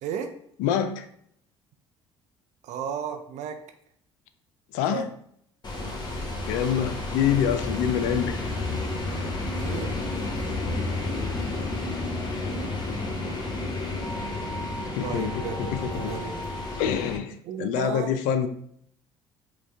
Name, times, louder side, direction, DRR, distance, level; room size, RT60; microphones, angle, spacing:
voice 1, 0.0-0.3 2.6-3.6 4.9-5.0 5.8-6.0 9.4-10.0 11.6-11.9 15.0-16.3 17.4-18.1, right 7 dB, 60° right, 5 dB, 0.5 m, -34 dB
voice 2, 0.6-1.1 4.7-5.1 6.5-8.3 15.0-16.1 16.8-18.5, left 8 dB, 65° left, 9 dB, 0.4 m, -26 dB
sound 1, 5.6-17.2, left 2 dB, 30° left, 1.3 m, -31 dB
4.9 x 2.2 x 3.5 m, 0.69 s
hypercardioid pair, 55°, 14 cm